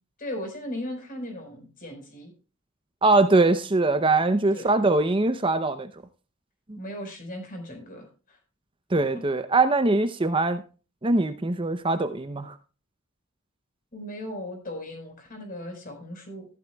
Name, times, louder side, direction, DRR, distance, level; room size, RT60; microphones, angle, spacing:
voice 1, 0.2-2.3 4.5-4.7 6.8-8.4 13.9-16.5, left 1 dB, 45° left, 4.8 m, -37 dB
voice 2, 3.0-5.9 6.7-6.8 8.9-10.6 11.0-12.6, right 2 dB, 25° right, 0.7 m, -22 dB
14.5 x 12.5 x 2.3 m
head